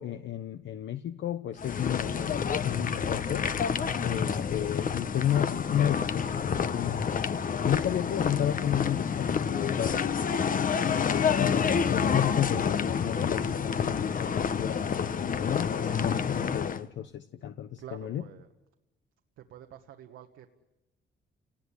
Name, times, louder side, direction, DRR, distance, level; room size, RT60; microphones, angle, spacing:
voice 1, 0.0-3.5 4.0-7.2 7.6-9.9 10.8-18.2, left 11 dB, 65° left, 9 dB, 1.0 m, -32 dB
sound 1, 1.6-16.8, left 6 dB, 45° left, 1.1 m, -28 dB
voice 2, 17.8-18.5 19.4-20.5, right 10 dB, 85° right, 5 dB, 1.5 m, -48 dB
28.5 x 19.0 x 10.0 m, 1.0 s
cardioid pair, 90°, 20 cm